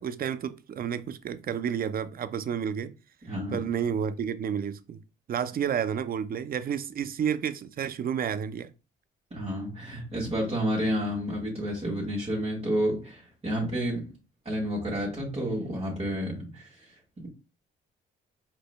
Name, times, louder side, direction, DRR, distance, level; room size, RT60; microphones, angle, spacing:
voice 1, 0.0-2.9 3.5-5.0 5.3-8.7, right 8 dB, 50° right, 0.5 m, -30 dB
voice 2, 3.3-3.6 9.3-14.1 14.5-16.9 17.2-17.3, equal, 30° right, 2.0 m, -30 dB
5.0 x 4.3 x 2.2 m
cardioid pair, 90°, 20 cm